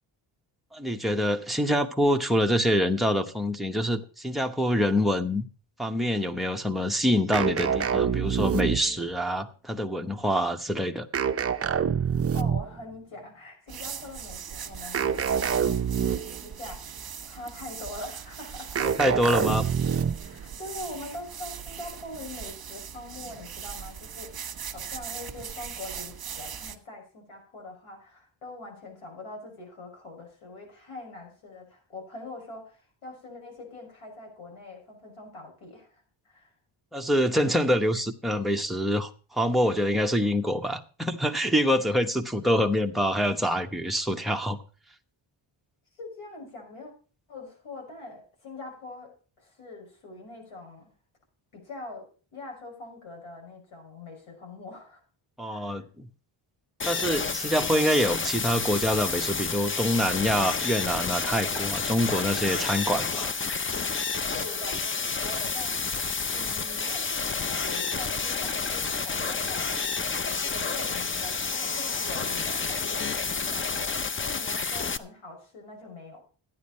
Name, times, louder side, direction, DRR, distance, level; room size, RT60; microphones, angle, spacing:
voice 1, 0.7-5.4 5.8-11.1 18.8-19.7 36.9-44.6 55.4-56.1 56.8-63.3, equal, ahead, 0.9 m, -26 dB
sound 1, 7.3-9.1 11.1-12.8 14.9-16.5 18.7-20.3, right 7 dB, 30° right, 0.5 m, -26 dB
voice 2, 11.9-18.9 19.2-19.5 20.2-36.5 45.9-46.9 47.3-50.9 51.5-55.0 55.4-55.8 64.3-66.0 66.3-70.0 70.3-76.2, left 2 dB, 75° left, 6.1 m, -43 dB
sound 2, 13.7-26.8, right 8 dB, 45° right, 1.4 m, -40 dB
sound 3, 56.8-75.0, left 5 dB, 25° left, 0.5 m, -30 dB
13.5 x 9.8 x 4.1 m
wide cardioid pair, 150°, 50 cm